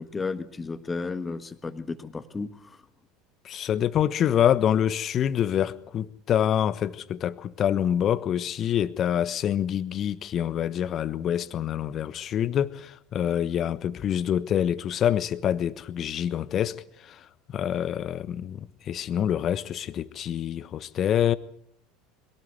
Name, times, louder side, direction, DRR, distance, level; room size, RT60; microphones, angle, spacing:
voice 1, 0.0-2.8, left 4 dB, 20° left, 1.5 m, -33 dB
voice 2, 3.4-21.3, left 10 dB, 45° left, 1.1 m, -26 dB
22.0 x 17.5 x 8.1 m
hypercardioid pair, 75°, 0 cm